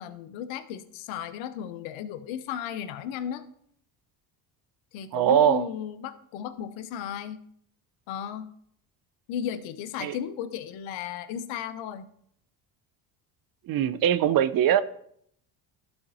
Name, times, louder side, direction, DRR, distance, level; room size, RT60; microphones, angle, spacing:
voice 1, 0.0-3.5 4.9-7.4 8.1-8.5 9.3-12.1, left 9 dB, 65° left, 13 dB, 0.8 m, -35 dB
voice 2, 5.1-5.6 10.0-10.2 13.7-14.8, right 10 dB, 45° right, 14 dB, 0.6 m, -21 dB
12.0 x 4.3 x 4.0 m, 0.68 s
hypercardioid pair, 65°, 49 cm